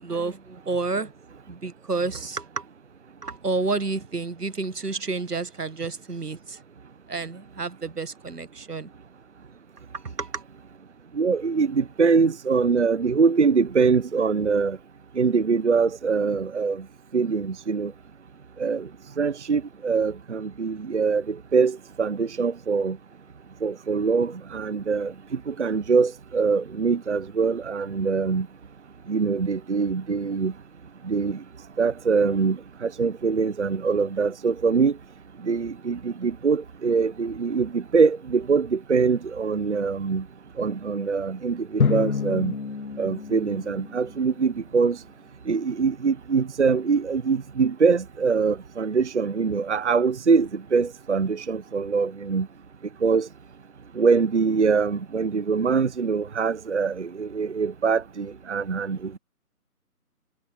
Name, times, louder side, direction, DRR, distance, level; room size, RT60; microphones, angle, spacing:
voice 1, 0.0-2.6 3.2-6.6 7.1-8.9 9.9-10.4, right 3 dB, 80° right, 1.4 m, -30 dB
voice 2, 11.2-14.8 15.2-16.8 17.1-17.9 18.6-18.9 19.2-23.0 23.6-25.1 25.5-28.5 29.1-30.5 31.0-31.4 31.8-34.9 35.4-40.2 40.6-42.5 43.0-45.0 45.5-52.5 53.0-53.3 54.0-59.2, right 5 dB, 50° right, 0.8 m, -23 dB
Drum, 41.8-44.5, left 5 dB, 65° left, 1.0 m, -28 dB
figure-of-eight pair, 155°, 46 cm